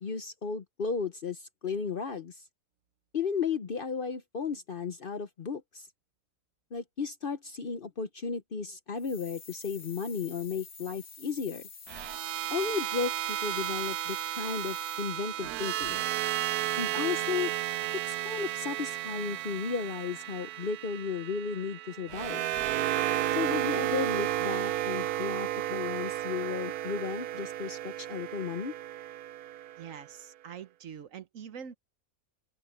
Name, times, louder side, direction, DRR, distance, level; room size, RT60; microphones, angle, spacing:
voice 1, 0.0-2.4 3.1-5.9 6.7-11.7 12.5-16.0 16.8-17.5 18.1-22.5 23.3-28.7, left 5 dB, 45° left, 0.8 m, -34 dB
sound 1, 9.0-15.4, left 5 dB, 85° left, 2.2 m, -49 dB
sound 2, 11.9-30.0, right 14 dB, 90° right, 1.1 m, -33 dB
voice 2, 29.8-31.7, right 8 dB, 65° right, 1.2 m, -44 dB
open air
omnidirectional pair, 1.6 m